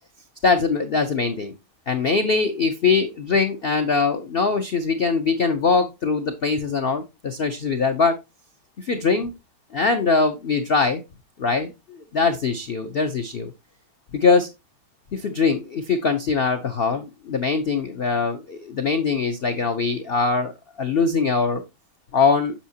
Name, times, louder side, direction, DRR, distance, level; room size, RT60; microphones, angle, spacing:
voice 1, 0.4-1.5 1.9-8.1 8.8-9.3 9.7-11.0 11.4-13.5 14.1-14.5 15.1-20.5 20.8-21.6 22.1-22.5, left 4 dB, 85° left, 7 dB, 0.5 m, -22 dB
7.2 x 6.3 x 2.7 m, 0.23 s
omnidirectional pair, 2.0 m